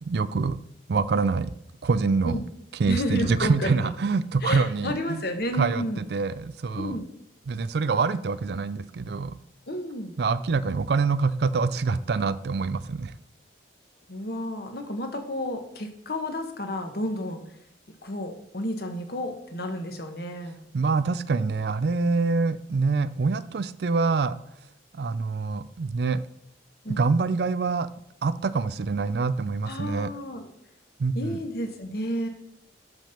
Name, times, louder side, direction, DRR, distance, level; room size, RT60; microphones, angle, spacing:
voice 1, 0.0-0.6 0.9-1.5 1.8-2.4 2.8-5.2 5.5-7.0 7.5-9.4 10.2-13.1 20.7-24.4 24.9-26.2 26.9-27.9 28.2-30.1 31.0-31.4, right 4 dB, 55° right, 15 dB, 0.4 m, -25 dB
voice 2, 2.9-3.9 4.4-6.0 6.7-7.1 9.7-10.1 14.1-17.4 18.0-20.6 26.8-27.1 29.6-30.5 31.1-32.3, left 1 dB, 55° left, 6 dB, 1.1 m, -31 dB
6.7 x 6.0 x 5.7 m, 0.76 s
head